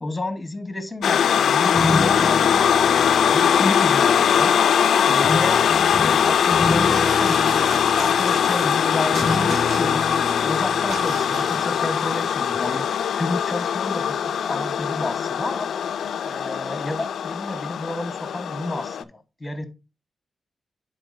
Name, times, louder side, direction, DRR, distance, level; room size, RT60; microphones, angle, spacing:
voice 1, 0.0-4.5 5.0-10.1 10.4-12.9 13.2-15.7 16.2-19.7, left 2 dB, 20° left, 9 dB, 1.2 m, -31 dB
sound 1, 1.0-19.0, left 8 dB, 90° left, 0.3 m, -21 dB
bending my guitar, 1.7-4.4 5.2-12.2 12.5-12.8, left 3 dB, 35° left, 0.5 m, -29 dB
sound 2, 6.9-8.8 9.1-10.3 10.9-11.7, right 6 dB, 75° right, 0.5 m, -36 dB
9.8 x 4.3 x 2.6 m, 0.28 s
cardioid pair, 95°, 0 cm